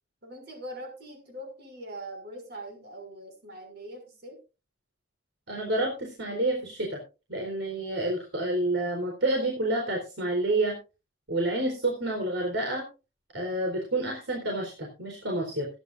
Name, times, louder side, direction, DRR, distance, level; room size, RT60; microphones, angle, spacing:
voice 1, 0.2-4.4, right 1 dB, 55° right, 4 dB, 6.5 m, -42 dB
voice 2, 5.5-7.0 7.3-10.8 11.3-12.8 13.3-15.7, right 2 dB, 75° right, 0 dB, 4.2 m, -29 dB
22.0 x 10.5 x 2.6 m, 0.32 s
head